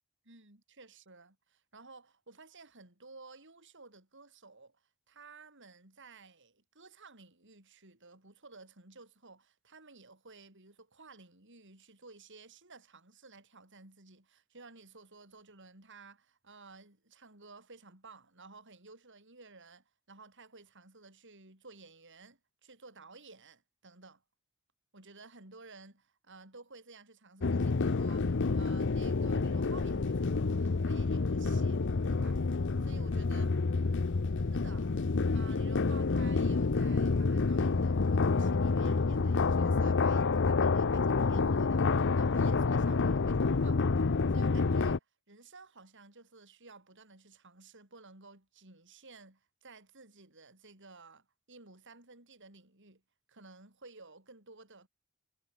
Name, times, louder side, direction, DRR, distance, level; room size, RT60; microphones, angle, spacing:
voice 1, 0.3-24.2 24.9-32.4 32.8-33.5 34.5-34.9 35.3-43.9 44.3-53.0 53.3-54.9, right 3 dB, 55° right, 7.2 m, -55 dB
sound 1, 27.4-45.0, left 4 dB, 55° left, 0.7 m, -28 dB
head